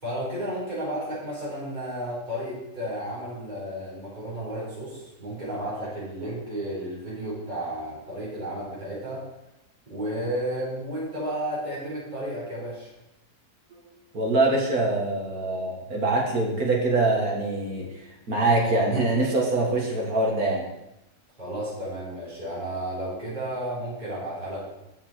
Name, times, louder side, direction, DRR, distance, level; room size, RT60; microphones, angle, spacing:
voice 1, 0.0-9.2 9.9-12.9 21.4-24.7, right 1 dB, 25° right, -8 dB, 4.2 m, -32 dB
voice 2, 14.1-20.6, right 2 dB, 65° right, -1 dB, 2.4 m, -24 dB
8.5 x 7.2 x 4.4 m, 0.90 s
omnidirectional pair, 1.7 m